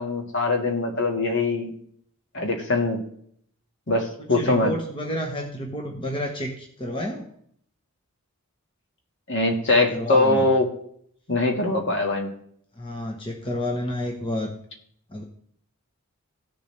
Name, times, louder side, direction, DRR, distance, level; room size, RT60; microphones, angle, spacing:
voice 1, 0.0-1.8 2.3-3.0 3.9-4.7 9.3-10.7 11.3-12.3, left 2 dB, 55° left, 2 dB, 1.8 m, -22 dB
voice 2, 4.4-7.3 9.7-10.5 12.8-14.5 15.1-15.2, left 1 dB, 25° left, 1 dB, 1.1 m, -30 dB
16.5 x 6.9 x 3.3 m, 0.64 s
head